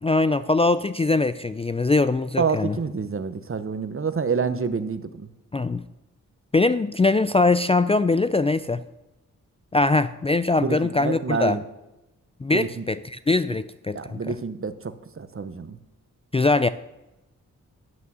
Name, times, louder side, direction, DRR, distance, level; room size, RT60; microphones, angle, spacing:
voice 1, 0.0-2.8 5.5-5.8 6.5-8.8 9.7-11.6 12.4-14.4 16.3-16.7, left 3 dB, 20° left, 13 dB, 0.4 m, -22 dB
voice 2, 2.4-5.3 10.6-11.6 12.5-12.8 13.9-15.8, right 5 dB, 40° right, 12 dB, 0.9 m, -28 dB
9.6 x 8.4 x 6.2 m, 0.96 s
cardioid pair, 65°, 32 cm